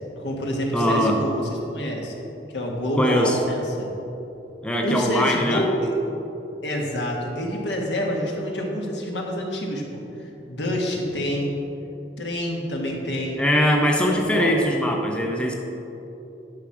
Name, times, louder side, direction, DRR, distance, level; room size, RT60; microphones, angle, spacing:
voice 1, 0.2-2.1 2.5-3.9 4.8-5.7 6.6-11.6 12.2-13.4 14.0-14.5, equal, 75° left, 0 dB, 1.5 m, -27 dB
voice 2, 0.7-1.2 2.9-3.4 4.6-5.6 13.4-15.5, equal, 5° left, 1 dB, 0.6 m, -21 dB
10.5 x 5.9 x 4.8 m, 3.0 s
head